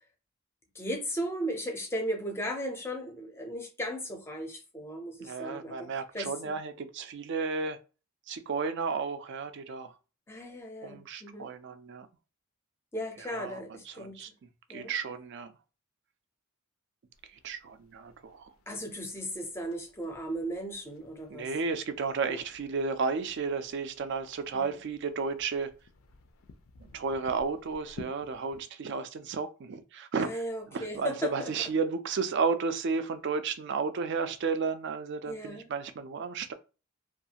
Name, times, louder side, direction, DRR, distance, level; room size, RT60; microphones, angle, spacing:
voice 1, 0.7-5.9 6.1-6.6 10.3-11.5 12.9-14.2 14.7-14.9 18.7-21.5 22.3-22.4 24.5-24.7 30.2-31.5 35.3-35.7, equal, 10° left, 0.5 m, -36 dB
voice 2, 5.2-7.8 8.3-10.0 10.8-12.1 13.2-15.5 17.3-18.5 21.3-25.7 26.8-30.4 30.7-36.5, right 5 dB, 55° right, 0.3 m, -33 dB
sound 1, 17.1-28.6, left 4 dB, 70° left, 0.4 m, -55 dB
2.4 x 2.3 x 2.8 m
head